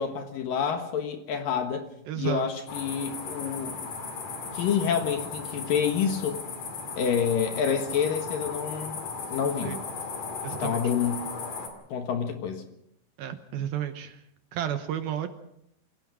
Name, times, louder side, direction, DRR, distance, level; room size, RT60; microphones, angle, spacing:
voice 1, 0.0-1.9 2.2-3.8 4.5-6.4 7.0-9.0 9.3-9.8 10.6-11.2 11.9-12.6, left 7 dB, 65° left, 6 dB, 2.7 m, -28 dB
voice 2, 2.1-2.4 9.6-9.8 10.4-10.8 13.2-14.2 14.5-15.3, right 10 dB, 75° right, 8 dB, 2.5 m, -32 dB
sound 1, 2.7-11.7, left 4 dB, 45° left, 3.5 m, -36 dB
25.5 x 17.0 x 6.3 m, 0.76 s
omnidirectional pair, 5.0 m